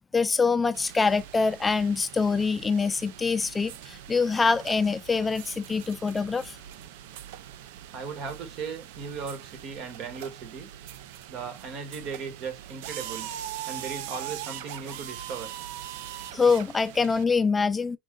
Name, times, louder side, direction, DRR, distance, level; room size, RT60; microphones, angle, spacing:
voice 1, 0.1-6.6 16.3-18.0, left 4 dB, 20° left, 0.3 m, -25 dB
sound 1, 0.7-17.2, right 11 dB, 85° right, 0.4 m, -42 dB
voice 2, 7.9-10.7 11.3-13.3 13.7-15.5, right 5 dB, 60° right, 1.5 m, -37 dB
5.1 x 2.4 x 3.8 m
supercardioid pair, 120°, 0 cm